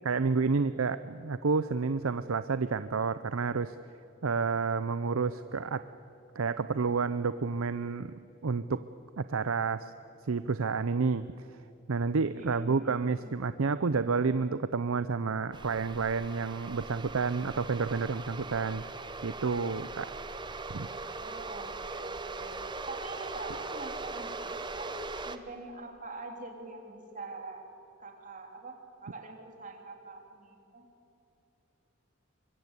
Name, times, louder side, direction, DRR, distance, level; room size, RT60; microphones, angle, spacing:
voice 1, 0.0-3.8 4.2-5.9 6.4-8.1 8.4-8.8 9.2-9.9 10.3-11.3 11.9-18.8 19.2-20.1 20.7-20.9, right 4 dB, 90° right, 13 dB, 0.6 m, -30 dB
voice 2, 12.4-13.3 20.8-24.4 24.7-24.9 25.3-27.6 28.0-30.9, right 3 dB, 40° right, 2 dB, 3.5 m, -45 dB
sound 1, 15.5-25.4, right 3 dB, 20° right, 1.0 m, -40 dB
24.0 x 22.5 x 8.3 m, 2.9 s
head